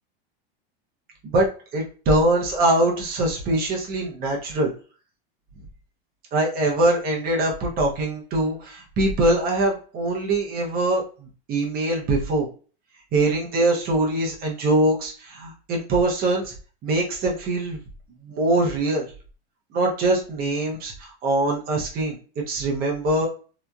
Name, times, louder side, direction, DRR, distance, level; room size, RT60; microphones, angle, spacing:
voice 1, 1.7-4.7 6.3-11.0 11.5-12.5 13.1-16.5 16.8-17.8 18.2-19.1 19.7-22.2 22.5-23.3, right 2 dB, 30° right, -1 dB, 0.7 m, -23 dB
2.9 x 2.3 x 2.3 m, 0.36 s
supercardioid pair, 145°, 31 cm